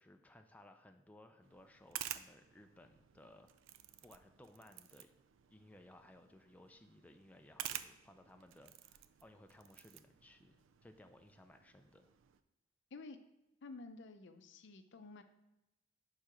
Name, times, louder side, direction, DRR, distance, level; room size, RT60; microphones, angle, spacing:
voice 1, 0.0-3.5 4.0-5.1 5.5-12.1, left 1 dB, 10° left, 5 dB, 0.4 m, -61 dB
sound 1, 1.4-12.4, right 11 dB, 70° right, 0.4 m, -51 dB
voice 2, 13.6-15.2, left 3 dB, 65° left, 9 dB, 0.5 m, -51 dB
5.6 x 4.6 x 5.0 m, 0.94 s
head